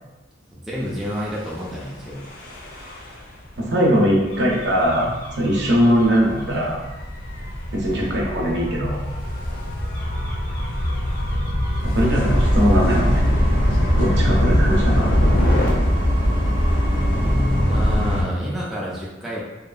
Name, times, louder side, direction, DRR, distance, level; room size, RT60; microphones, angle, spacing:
voice 1, 0.5-2.2 17.7-19.4, equal, ahead, -7 dB, 0.3 m, -30 dB
Gull seagull / Waves surf / Siren, 1.0-15.7, equal, 50° left, 0.5 m, -24 dB
voice 2, 3.7-6.8 7.7-9.0 11.8-13.2 14.0-15.1, equal, 65° right, -2 dB, 0.6 m, -20 dB
sound 1, 12.1-18.2, equal, 75° left, 0.8 m, -21 dB
2.7 x 2.3 x 2.3 m, 1.1 s
head